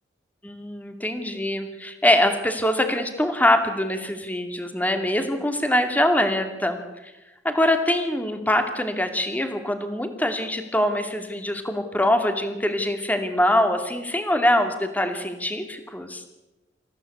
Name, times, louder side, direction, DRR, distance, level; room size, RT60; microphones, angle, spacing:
voice 1, 0.4-6.8 7.4-16.2, left 1 dB, 10° left, 6 dB, 2.4 m, -23 dB
27.0 x 15.5 x 8.6 m, 1.0 s
head